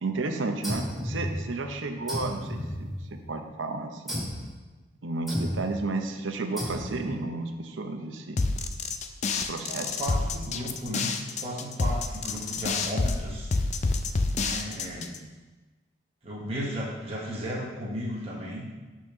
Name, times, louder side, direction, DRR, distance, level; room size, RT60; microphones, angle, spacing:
voice 1, 0.0-4.2 5.0-8.4 9.3-10.0, right 3 dB, 85° right, 5 dB, 0.7 m, -32 dB
sound 1, 0.6-1.7 2.1-3.4 4.1-4.5 5.3-5.8 6.6-7.2, equal, ahead, 2.0 m, -33 dB
sound 2, 8.4-15.2, left 3 dB, 35° left, 0.4 m, -28 dB
voice 2, 9.7-13.5 14.3-15.2 16.2-18.7, equal, 30° right, -6 dB, 1.1 m, -35 dB
6.1 x 4.2 x 5.9 m, 1.2 s
head